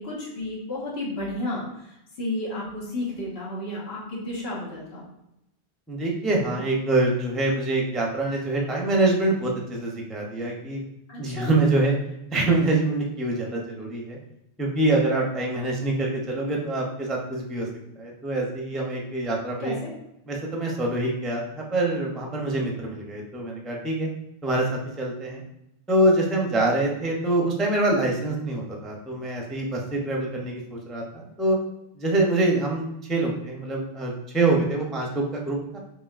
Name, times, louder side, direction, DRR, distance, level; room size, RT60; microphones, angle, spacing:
voice 1, 0.0-5.0 11.1-11.6 19.6-19.9, left 1 dB, 80° left, -4 dB, 1.4 m, -32 dB
voice 2, 5.9-10.8 11.2-12.0 12.3-14.2 14.6-17.7 18.0-19.7 20.3-24.1 24.4-24.7 25.0-25.4 25.9-31.6 32.0-35.8, right 2 dB, ahead, -1 dB, 0.5 m, -25 dB
4.7 x 3.2 x 2.4 m, 0.84 s
omnidirectional pair, 1.0 m